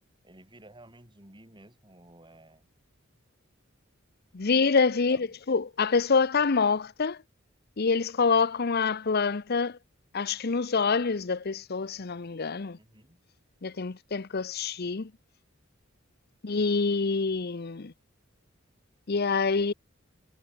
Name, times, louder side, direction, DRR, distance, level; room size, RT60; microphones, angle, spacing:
voice 1, 0.2-2.7 5.1-5.4 12.8-13.2, right 1 dB, 25° right, 7.5 m, -53 dB
voice 2, 4.3-7.2 7.8-9.8 10.1-12.8 13.6-15.1 16.4-17.9 19.1-19.7, left 4 dB, 50° left, 0.7 m, -26 dB
head